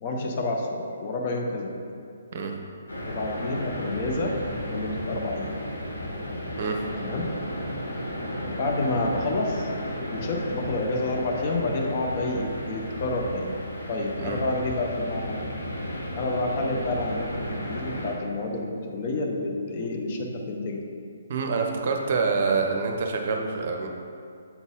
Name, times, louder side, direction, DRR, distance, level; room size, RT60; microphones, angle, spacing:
voice 1, 0.0-1.7 3.0-4.3 4.7-5.5 7.0-7.3 8.4-9.7 10.1-13.5 13.9-15.4 16.1-20.8, left 2 dB, 35° left, 1 dB, 0.8 m, -29 dB
sound 1, 2.9-18.1, equal, 75° left, 1.0 m, -34 dB
voice 2, 21.3-23.9, right 4 dB, 45° right, 3 dB, 0.7 m, -26 dB
7.2 x 4.1 x 3.5 m, 2.4 s
figure-of-eight pair, 135°, 0 cm